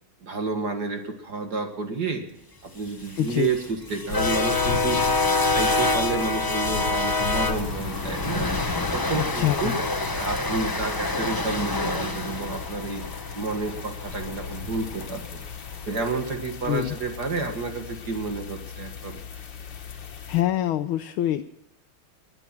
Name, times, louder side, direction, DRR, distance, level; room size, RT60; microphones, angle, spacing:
voice 1, 0.2-2.2 2.6-5.0 5.3-8.5 8.9-9.8 10.1-13.0 13.3-15.4 15.9-19.2, right 4 dB, 50° right, 5 dB, 2.2 m, -30 dB
sound 1, 2.9-15.1, left 2 dB, 25° left, 0.4 m, -27 dB
voice 2, 3.2-3.5 9.1-9.8 16.7-17.0 20.3-21.4, left 13 dB, 75° left, 7 dB, 1.5 m, -25 dB
sound 2, 4.1-20.4, left 5 dB, 60° left, 2.2 m, -36 dB
21.0 x 10.0 x 6.0 m, 0.86 s
omnidirectional pair, 2.4 m